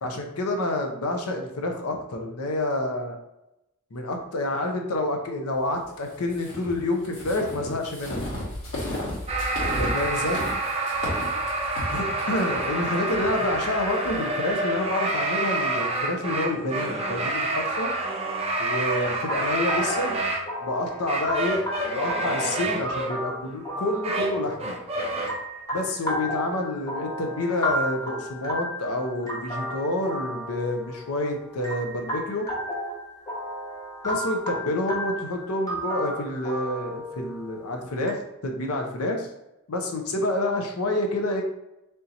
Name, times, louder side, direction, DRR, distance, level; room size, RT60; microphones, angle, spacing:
voice 1, 0.0-3.2 3.9-8.2 9.8-10.4 11.9-17.9 18.6-20.2 20.6-24.8 25.7-32.5 34.0-39.3 39.7-41.4, left 1 dB, 85° left, 3 dB, 0.7 m, -28 dB
sound 1, 6.3-14.2, left 1 dB, 60° left, 1.4 m, -34 dB
sound 2, 9.3-20.4 21.1-23.1 23.8-25.4, right 2 dB, 30° right, 0.6 m, -28 dB
sound 3, 18.9-38.1, equal, 15° left, 0.9 m, -33 dB
3.5 x 2.8 x 3.9 m, 0.90 s
head